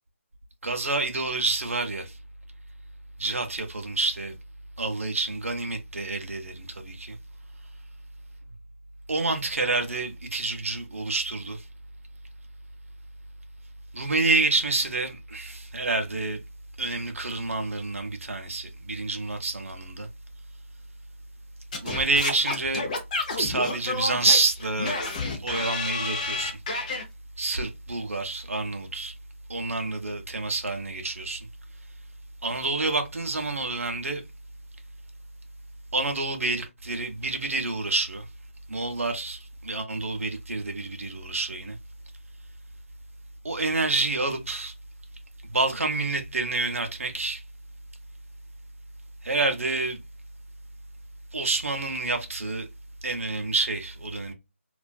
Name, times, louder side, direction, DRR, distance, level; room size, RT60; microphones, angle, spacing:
voice 1, 0.6-2.2 3.2-4.4 4.8-7.2 9.1-11.6 13.9-16.4 16.8-20.1 21.8-22.9 23.3-25.0 25.4-26.6 27.4-29.1 29.5-31.5 32.4-34.2 35.9-38.3 38.7-41.8 43.4-44.7 45.4-47.4 49.2-50.0 51.3-52.7 53.0-54.3, right 3 dB, 80° right, 0.6 m, -28 dB
Singing / Scratching (performance technique), 21.7-27.0, left 3 dB, 30° left, 0.5 m, -30 dB
2.4 x 2.3 x 2.3 m
figure-of-eight pair, 155°, 7 cm